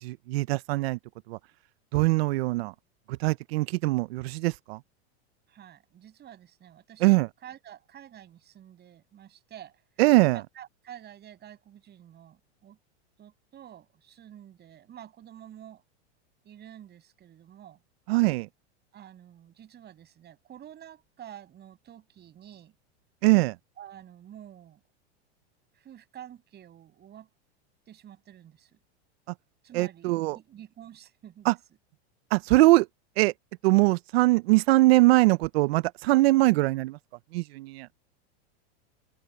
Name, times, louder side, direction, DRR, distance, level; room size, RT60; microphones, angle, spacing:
voice 1, 0.0-1.0 1.3-1.4 1.9-2.7 3.1-4.8 7.0-7.3 10.0-10.4 18.1-18.5 23.2-23.6 29.7-30.4 31.4-31.5 32.3-32.9 33.2-33.3 33.6-37.0 37.3-37.9, right 20 dB, 65° right, 0.8 m, -22 dB
voice 2, 5.5-7.1 7.4-9.8 10.3-12.8 13.2-15.8 16.4-17.8 18.9-22.7 23.8-24.8 25.7-27.3 27.9-28.7 29.6-31.5, right 10 dB, 30° right, 6.7 m, -49 dB
supercardioid pair, 125°, 33 cm